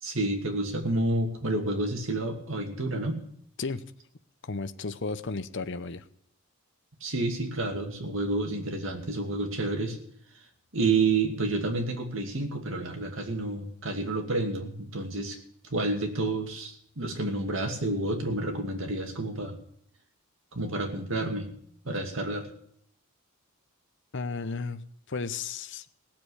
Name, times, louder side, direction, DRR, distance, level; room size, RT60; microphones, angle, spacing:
voice 1, 0.0-3.2 7.0-10.0 10.7-15.4 15.7-19.6 20.5-21.5 21.8-22.5, right 2 dB, 60° right, 4 dB, 2.5 m, -29 dB
voice 2, 3.6-3.9 4.4-6.0 24.1-24.8 25.1-25.9, left 4 dB, 55° left, 11 dB, 0.8 m, -34 dB
17.0 x 7.5 x 9.9 m, 0.66 s
head